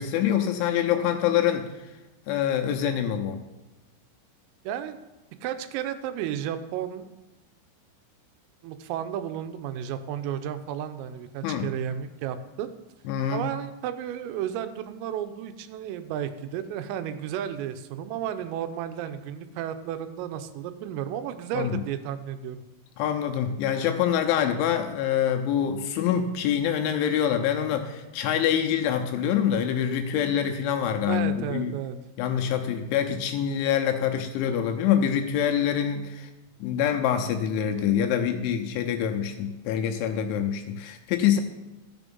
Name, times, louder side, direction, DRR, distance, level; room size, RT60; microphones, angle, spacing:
voice 1, 0.0-1.7 2.3-3.4 11.4-11.7 13.1-13.5 21.5-21.8 23.0-31.7 32.2-36.3 36.6-41.4, left 9 dB, 80° left, 4 dB, 3.0 m, -25 dB
voice 2, 4.6-5.0 5.4-7.1 8.6-12.7 13.3-22.7 31.1-32.0, right 10 dB, 90° right, 9 dB, 3.4 m, -33 dB
14.5 x 7.0 x 5.3 m, 1.0 s
omnidirectional pair, 5.8 m